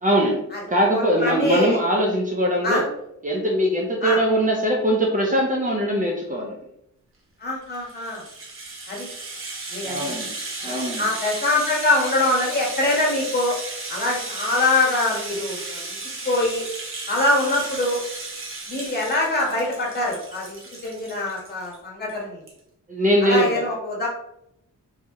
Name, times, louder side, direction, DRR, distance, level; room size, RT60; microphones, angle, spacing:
voice 1, 0.0-2.9 3.2-6.6 9.8-10.3 10.6-11.0 22.9-23.7, equal, 25° right, -2 dB, 0.7 m, -22 dB
voice 2, 0.9-1.8 2.6-2.8 4.0-4.2 7.4-8.2 8.9-9.1 9.7-10.1 10.6-13.6 13.9-15.8 16.2-16.6 17.1-18.0 18.7-20.6 20.8-22.4 23.2-24.1, left 2 dB, 30° left, -3 dB, 1.5 m, -23 dB
Rattle (instrument), 7.6-21.8 22.1-22.2 22.5-22.6, right 3 dB, 40° right, 1.1 m, -34 dB
4.5 x 2.9 x 3.7 m, 0.77 s
wide cardioid pair, 170°, 32 cm